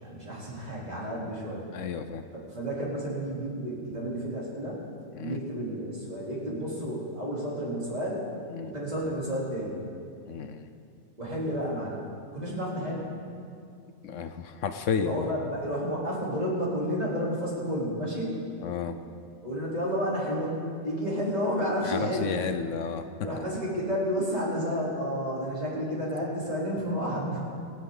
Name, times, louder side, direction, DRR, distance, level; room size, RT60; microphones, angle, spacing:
voice 1, 0.0-1.7 2.5-4.8 5.2-8.3 8.6-9.8 11.2-12.0 12.3-13.2 15.0-18.4 19.4-20.6 20.8-22.3 23.0-27.4, equal, 30° right, -6 dB, 3.5 m, -31 dB
voice 2, 1.7-2.2 5.1-5.4 8.5-8.7 10.3-10.7 14.0-15.3 18.6-19.0 21.8-23.1, left 6 dB, 65° left, 9 dB, 1.0 m, -32 dB
26.0 x 8.7 x 3.9 m, 2.3 s
omnidirectional pair, 1.5 m